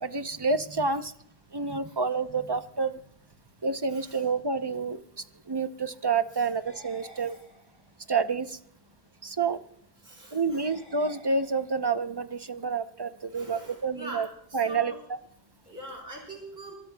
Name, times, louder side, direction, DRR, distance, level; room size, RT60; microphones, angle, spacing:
voice 1, 0.0-1.1 1.5-2.9 3.6-5.0 5.5-7.3 8.1-8.5 9.2-9.6 10.3-14.3 14.5-14.9, right 4 dB, 30° right, 10 dB, 0.7 m, -28 dB
voice 2, 3.9-4.2 6.4-6.5 10.0-10.7 13.3-15.0 15.6-16.8, right 2 dB, 80° right, -2 dB, 4.6 m, -43 dB
sound 1, 6.6-8.0 10.6-12.0, left 1 dB, 55° left, 3.2 m, -52 dB
24.0 x 23.5 x 2.3 m, 0.68 s
omnidirectional pair, 1.0 m